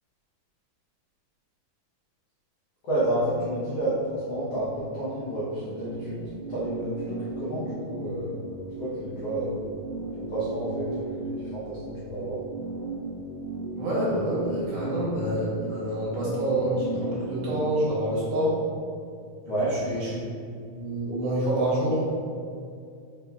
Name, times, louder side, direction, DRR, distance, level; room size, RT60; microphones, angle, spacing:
voice 1, 2.8-8.4 8.8-9.5 10.1-12.4 19.5-19.7, right 1 dB, 90° left, -10 dB, 1.3 m, -30 dB
sound 1, 5.3-17.7, right 2 dB, 85° right, 1.6 m, -36 dB
voice 2, 13.8-18.5 19.8-20.1 20.7-22.1, right 1 dB, 70° right, -8 dB, 2.6 m, -27 dB
5.6 x 3.7 x 2.3 m, 2.3 s
omnidirectional pair, 3.9 m